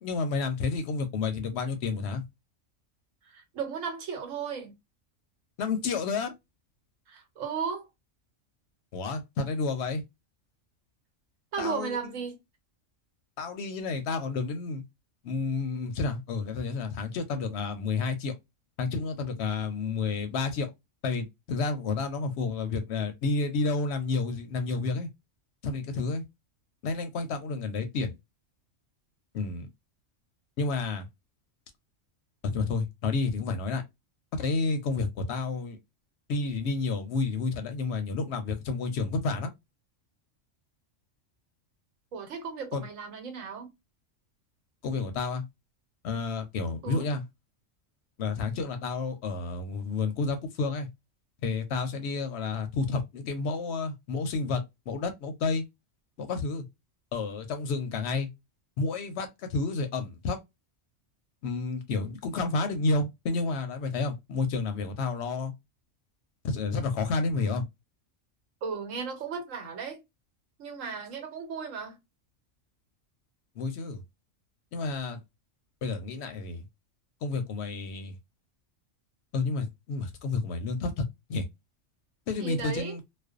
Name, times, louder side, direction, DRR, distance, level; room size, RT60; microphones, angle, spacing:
voice 1, 0.0-2.2 5.6-6.3 8.9-10.0 11.6-12.0 13.4-14.8 15.2-18.3 18.8-20.7 21.0-25.1 25.6-26.2 26.8-28.2 29.3-29.7 30.6-31.1 32.4-33.8 34.3-35.8 36.3-39.5 42.7-42.9 44.8-45.4 46.0-47.2 48.2-50.9 51.4-55.6 56.2-56.7 57.1-58.3 58.8-60.4 61.4-65.5 66.4-67.6 73.6-74.0 74.7-75.2 75.8-76.6 77.2-78.2 79.3-81.0 81.3-81.4 82.3-83.0, left 4 dB, 65° left, 0.8 m, -30 dB
voice 2, 3.2-4.7 7.1-7.9 11.5-12.4 42.1-43.7 46.8-47.1 68.6-70.0 70.6-72.0 82.4-83.0, right 6 dB, 85° right, 1.2 m, -35 dB
2.5 x 2.2 x 2.3 m
omnidirectional pair, 1.3 m